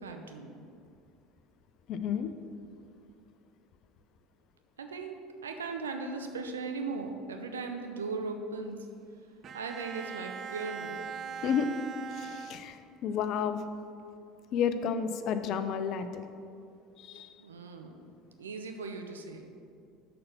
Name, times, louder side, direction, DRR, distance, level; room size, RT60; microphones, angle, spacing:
voice 1, 0.0-0.6 4.8-8.8 9.5-11.1 17.4-18.1 18.4-19.5, right 4 dB, 80° right, 5 dB, 0.7 m, -38 dB
voice 2, 1.9-2.3 11.4-11.7 12.1-13.6 14.5-16.2 17.0-17.3, left 7 dB, 50° left, 10 dB, 0.6 m, -31 dB
Bowed string instrument, 9.4-13.1, right 6 dB, 45° right, 0.3 m, -41 dB
6.7 x 5.5 x 7.0 m, 2.4 s
figure-of-eight pair, 70°, 0 cm